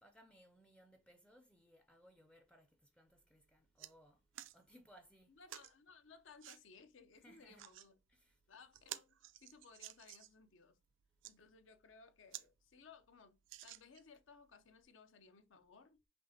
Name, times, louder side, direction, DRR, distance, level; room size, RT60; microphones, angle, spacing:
voice 1, 0.0-4.2 4.5-5.3 7.2-7.6 8.1-8.4, equal, 5° left, 0.4 m, -65 dB
sound 1, 3.1-3.2 3.5-3.9 4.3-4.6 5.5-5.7 6.4-6.6 7.4-7.9 8.3-8.4 8.7-10.4 11.0-11.3 11.9-12.0 12.3-12.5 12.8-12.9 13.5-14.2 14.8-14.9, right 14 dB, 80° right, 0.3 m, -52 dB
voice 2, 5.4-7.9 8.5-10.8 11.2-16.1, left 5 dB, 85° left, 0.7 m, -61 dB
5.4 x 2.8 x 2.7 m
head